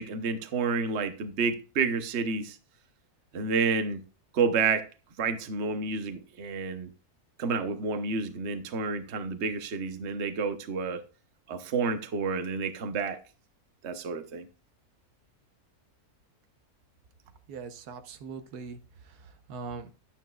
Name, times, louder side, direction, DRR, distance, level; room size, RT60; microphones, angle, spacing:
voice 1, 0.0-2.6 3.3-4.0 4.3-4.9 5.2-6.9 7.4-11.0 11.5-13.2 13.8-14.5, right 5 dB, 50° right, 1.1 m, -29 dB
voice 2, 17.5-18.8 19.0-19.9, right 5 dB, 90° right, 1.5 m, -41 dB
11.5 x 9.1 x 2.4 m
omnidirectional pair, 1.6 m